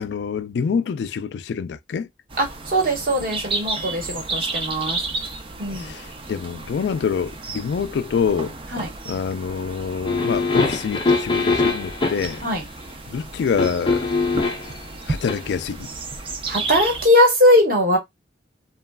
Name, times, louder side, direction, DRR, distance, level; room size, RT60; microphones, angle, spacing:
voice 1, 0.0-2.1 5.7-8.6 9.1-12.4 13.1-14.1 15.1-15.9, left 6 dB, 75° left, 0.3 m, -26 dB
sound 1, 2.3-17.1, right 3 dB, 30° right, 0.4 m, -32 dB
voice 2, 2.4-5.0 5.6-5.9 8.7-8.9 12.4-12.6 16.5-18.0, left 1 dB, 55° right, 1.1 m, -19 dB
sound 2, 10.0-12.4 13.6-14.7 15.2-15.4, left 3 dB, 30° left, 0.6 m, -22 dB
3.0 x 2.2 x 2.2 m
head